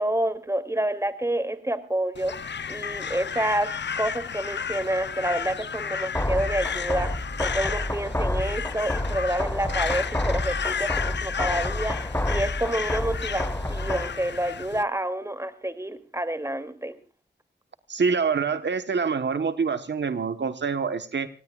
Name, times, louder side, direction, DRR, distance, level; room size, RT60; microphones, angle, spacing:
voice 1, 0.0-3.7 4.0-17.0, right 1 dB, 15° right, 10 dB, 2.7 m, -28 dB
Crow, 2.2-14.8, left 7 dB, 70° left, 0.7 m, -32 dB
sound 1, 6.1-14.1, left 1 dB, 15° left, 1.3 m, -29 dB
voice 2, 17.9-21.3, right 5 dB, 75° right, 10 dB, 1.2 m, -26 dB
26.5 x 18.0 x 2.4 m, 0.34 s
cardioid pair, 50°, 19 cm